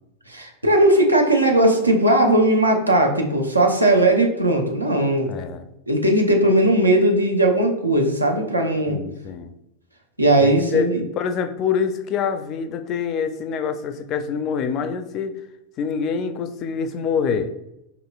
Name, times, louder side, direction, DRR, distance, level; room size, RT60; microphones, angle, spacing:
voice 1, 0.3-5.3 5.9-9.0 10.2-11.1, right 1 dB, 85° right, 1 dB, 0.7 m, -18 dB
voice 2, 5.3-5.7 8.9-9.5 10.4-10.9 11.2-15.4 15.8-17.5, left 6 dB, 35° left, 9 dB, 0.4 m, -25 dB
5.0 x 2.9 x 2.3 m, 0.87 s
figure-of-eight pair, 90°, 0 cm